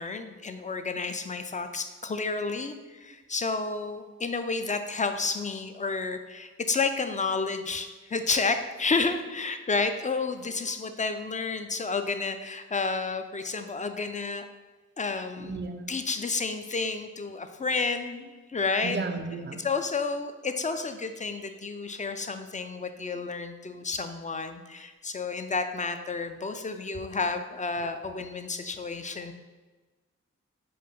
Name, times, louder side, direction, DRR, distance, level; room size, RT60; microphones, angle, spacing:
voice 1, 0.0-14.5 15.0-15.6 15.9-19.0 19.6-29.3, left 4 dB, 25° left, 8 dB, 0.4 m, -31 dB
voice 2, 15.4-15.9 18.8-19.6, right 3 dB, 35° right, 7 dB, 0.5 m, -34 dB
4.7 x 2.5 x 3.5 m, 1.3 s
cardioid pair, 45°, 30 cm